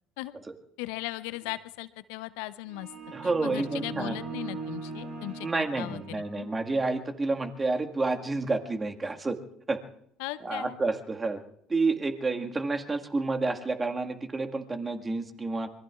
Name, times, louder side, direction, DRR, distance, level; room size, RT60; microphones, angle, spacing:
voice 1, 0.8-2.9 3.4-6.5 10.2-10.8, left 18 dB, 70° left, 15 dB, 0.6 m, -38 dB
sound 1, 2.7-6.6, right 4 dB, 70° right, 2.9 m, -40 dB
voice 2, 3.1-4.2 5.4-9.4 9.7-9.8 10.4-11.4 11.7-15.7, right 3 dB, 25° right, 4 dB, 1.7 m, -29 dB
26.5 x 22.5 x 2.4 m, 0.70 s
hypercardioid pair, 65°, 0 cm